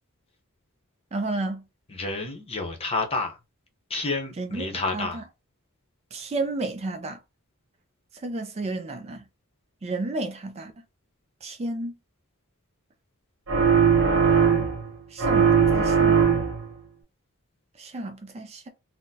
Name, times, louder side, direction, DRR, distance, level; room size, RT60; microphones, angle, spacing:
voice 1, 1.1-1.6 4.4-4.7 4.9-5.2 6.1-7.2 8.2-9.2 9.8-10.7 11.4-11.9 15.1-16.2 17.8-18.7, right 2 dB, 30° right, 0.4 m, -31 dB
voice 2, 1.9-3.4 3.9-5.2, left 3 dB, 25° left, 0.8 m, -29 dB
sound 1, 13.5-14.9 15.2-16.7, right 6 dB, 65° right, 1.0 m, -19 dB
4.1 x 2.0 x 2.7 m
head